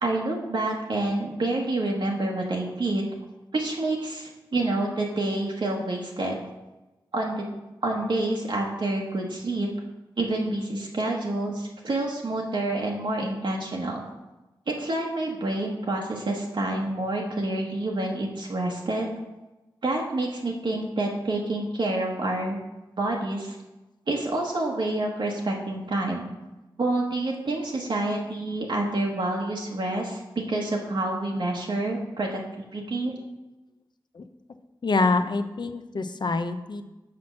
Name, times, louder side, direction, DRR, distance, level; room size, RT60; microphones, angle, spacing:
voice 1, 0.0-3.0 3.5-6.4 7.1-7.5 7.8-9.7 10.2-14.0 14.7-19.1 19.8-22.6 23.0-23.6 24.1-26.3 26.8-30.2 30.5-33.2, right 2 dB, 60° right, -2 dB, 1.1 m, -28 dB
voice 2, 34.8-36.8, left 3 dB, 55° left, 9 dB, 0.6 m, -25 dB
6.0 x 4.4 x 6.2 m, 1.1 s
cardioid pair, 55°, 9 cm